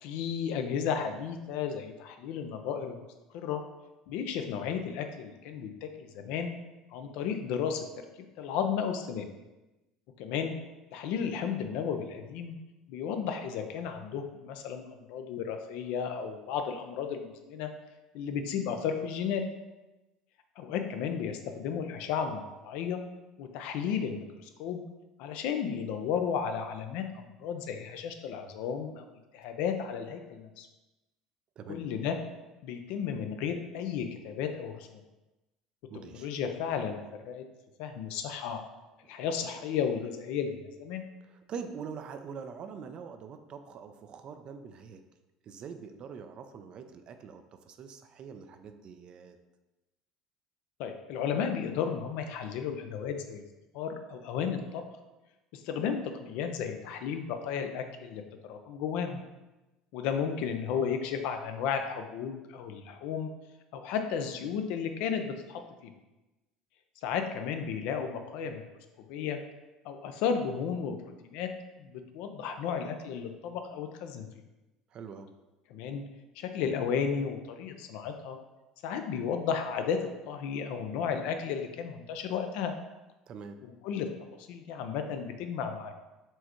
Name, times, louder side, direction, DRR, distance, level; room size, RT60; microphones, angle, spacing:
voice 1, 0.0-3.0 3.3-3.6 4.1-6.6 6.9-8.0 8.4-9.3 10.2-10.6 10.9-12.6 12.9-17.7 18.1-19.4 20.6-23.0 23.4-24.8 25.2-30.7 31.7-32.2 32.6-35.0 36.1-37.0 37.3-37.4 37.8-38.6 39.1-41.0 50.8-53.4 53.7-54.8 55.5-58.2 58.5-59.2 59.9-63.3 63.7-65.9 67.0-68.6 69.1-69.4 69.8-71.0 71.2-71.5 71.8-74.3 75.7-76.0 76.4-78.4 78.8-80.0 80.3-82.7 83.8-84.1 84.4-85.9, left 7 dB, 70° left, 6 dB, 0.5 m, -33 dB
voice 2, 35.9-36.3 41.2-45.0 45.4-49.4 74.9-75.3 83.3-83.6, right 6 dB, 45° right, 7 dB, 0.4 m, -44 dB
4.4 x 3.3 x 3.0 m, 1.1 s
hypercardioid pair, 80°, 2 cm